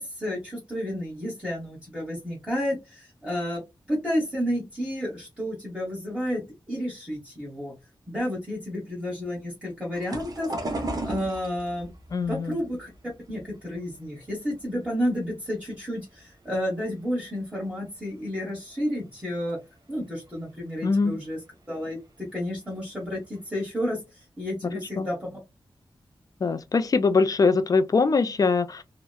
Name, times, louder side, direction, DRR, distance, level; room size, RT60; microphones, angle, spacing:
voice 1, 0.0-7.7 8.1-11.9 12.3-12.9 13.3-19.6 19.9-21.4 21.7-25.4, equal, 10° right, 1.1 m, -31 dB
sound 1, 9.9-15.0 15.4-16.3 16.8-17.1 17.4-17.5 18.7-18.8 19.3-19.4 20.0-20.1 20.2-20.6 21.8-22.0 22.5-22.6 23.1-23.5, right 1 dB, 45° right, 0.6 m, -36 dB
voice 2, 12.1-12.6 20.8-21.2 25.0-25.1 26.4-28.8, left 4 dB, 45° left, 0.3 m, -22 dB
2.8 x 2.0 x 2.2 m
wide cardioid pair, 105°, 9 cm